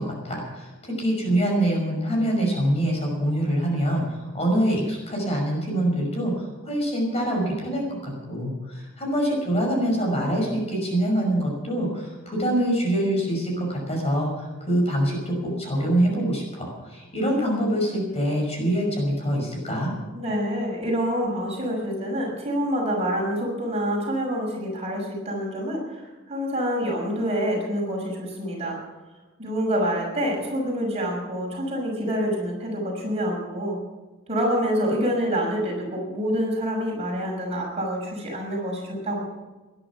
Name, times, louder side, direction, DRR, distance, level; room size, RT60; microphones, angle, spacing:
voice 1, 0.0-19.9, right 1 dB, 30° left, 0 dB, 5.7 m, -25 dB
voice 2, 20.1-28.8 29.4-33.8 34.3-39.2, equal, 30° right, -1 dB, 6.0 m, -27 dB
20.0 x 11.0 x 6.0 m, 1.2 s
head